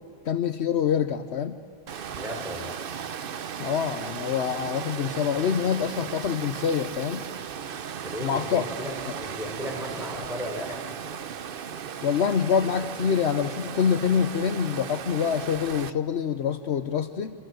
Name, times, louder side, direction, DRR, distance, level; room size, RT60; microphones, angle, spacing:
voice 1, 0.2-1.6 3.6-7.3 8.2-8.6 12.0-17.3, left 7 dB, 65° left, 11 dB, 1.0 m, -26 dB
Water, 1.9-15.9, right 7 dB, 55° right, 0.9 m, -36 dB
voice 2, 2.1-2.8 8.0-10.9, equal, ahead, 0 dB, 4.6 m, -35 dB
26.5 x 25.5 x 7.8 m, 2.6 s
omnidirectional pair, 1.2 m